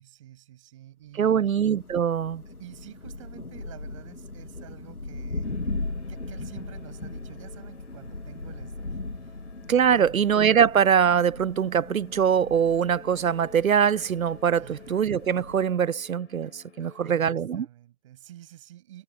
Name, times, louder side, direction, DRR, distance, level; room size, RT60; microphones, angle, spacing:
voice 1, 0.0-1.4 2.5-5.7 6.1-8.9 9.2-9.4 9.8-10.3 14.6-15.0 16.4-16.5 16.8-19.0, right 13 dB, 20° right, 8.0 m, -49 dB
voice 2, 1.1-2.4 9.7-17.7, right 8 dB, 70° right, 0.5 m, -23 dB
Thunder, 1.3-15.9, left 2 dB, 85° left, 3.2 m, -38 dB
sound 1, 5.4-17.2, left 5 dB, 50° left, 6.3 m, -53 dB
figure-of-eight pair, 155°, 44 cm